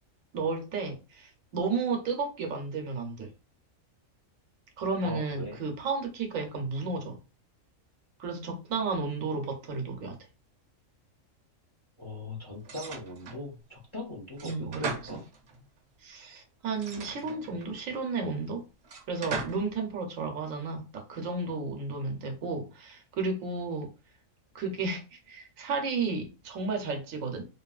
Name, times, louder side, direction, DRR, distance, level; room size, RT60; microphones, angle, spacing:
voice 1, 0.3-3.3 4.8-7.2 8.2-10.2 14.4-15.2 16.0-18.6 19.1-23.9 24.5-27.5, right 4 dB, 80° right, 1.1 m, -33 dB
voice 2, 5.0-5.6 12.0-15.2, left 1 dB, 30° left, 0.6 m, -40 dB
sound 1, 12.6-13.5 14.4-15.7 16.7-17.8 18.8-19.7, right 4 dB, 60° right, 0.9 m, -38 dB
2.9 x 2.6 x 2.3 m
omnidirectional pair, 1.4 m